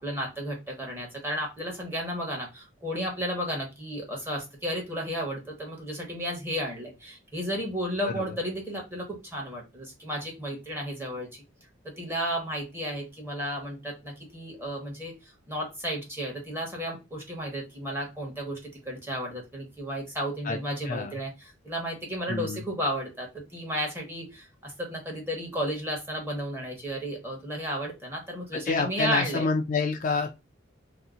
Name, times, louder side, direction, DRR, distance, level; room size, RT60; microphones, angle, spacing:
voice 1, 0.0-11.3 11.8-29.5, equal, 10° right, -1 dB, 1.1 m, -33 dB
voice 2, 8.0-8.4 20.4-20.6 20.9-21.1 22.3-22.6 28.7-30.4, left 4 dB, 40° left, 4 dB, 0.4 m, -28 dB
2.7 x 2.1 x 3.6 m, 0.25 s
head